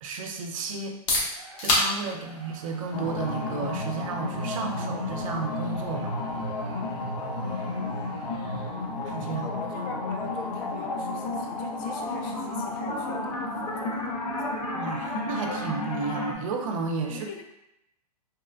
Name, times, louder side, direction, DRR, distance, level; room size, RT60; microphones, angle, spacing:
voice 1, 0.0-1.0 1.6-6.1 9.0-9.5 14.7-17.4, right 4 dB, 55° right, 3 dB, 0.5 m, -32 dB
sound 1, 0.8-16.4, left 1 dB, 50° left, 0.9 m, -37 dB
Crowd, 1.3-9.0, right 2 dB, 30° right, 0.9 m, -51 dB
voice 2, 2.0-2.3 7.2-8.0 9.4-14.4 17.1-17.4, left 5 dB, 35° left, 2 dB, 0.4 m, -42 dB
sound 2, 2.9-16.3, left 2 dB, 80° left, 0.7 m, -32 dB
2.9 x 2.1 x 2.4 m, 0.84 s
hypercardioid pair, 130°, 20 cm